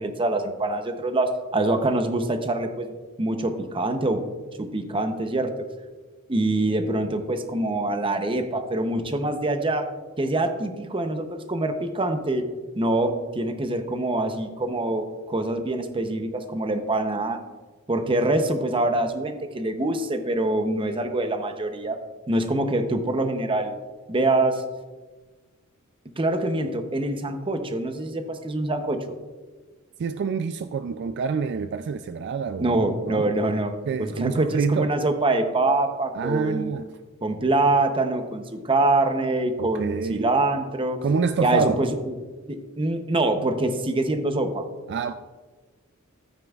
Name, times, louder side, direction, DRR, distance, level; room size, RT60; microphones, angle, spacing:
voice 1, 0.0-4.2 4.6-5.5 6.3-9.9 10.2-12.4 12.8-17.4 17.9-22.0 22.3-23.7 24.1-24.6 26.2-29.0 32.6-33.7 34.0-36.7 37.2-41.0 41.4-42.2 42.5-44.6, right 2 dB, 25° right, 0.7 m, -25 dB
voice 2, 30.0-33.3 33.9-34.9 36.1-36.9 39.6-40.3 41.0-41.8 44.9-45.1, right 5 dB, 55° right, 0.3 m, -27 dB
12.5 x 9.0 x 2.4 m
head